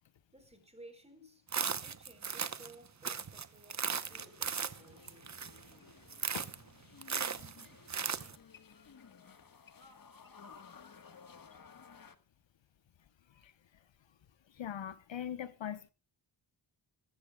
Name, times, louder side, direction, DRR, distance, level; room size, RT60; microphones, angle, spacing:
voice 1, 0.3-1.5 1.8-5.4, right 1 dB, 15° right, 4.1 m, -57 dB
sound 1, 1.5-2.7 3.0-5.7 6.1-6.6 7.0-8.4, right 6 dB, 35° right, 0.9 m, -37 dB
sound 2, 3.4-12.2, left 5 dB, 45° left, 1.5 m, -57 dB
voice 2, 14.5-15.9, left 9 dB, 70° left, 1.0 m, -41 dB
22.0 x 14.0 x 2.3 m
wide cardioid pair, 105°, 47 cm